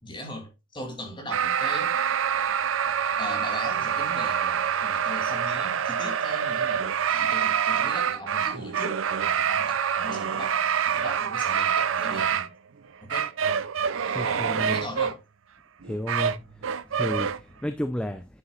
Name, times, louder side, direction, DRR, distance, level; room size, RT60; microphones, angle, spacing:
voice 1, 0.0-2.0 3.2-12.5 13.0-13.3 14.1-15.2, left 1 dB, 25° left, 2.6 m, -39 dB
sound 1, 1.3-12.5 13.1-15.1 15.8-17.4, right 8 dB, 75° right, 0.5 m, -26 dB
voice 2, 14.1-14.8 15.8-16.4 16.9-18.3, equal, 5° left, 0.4 m, -32 dB
9.6 x 6.8 x 2.4 m
head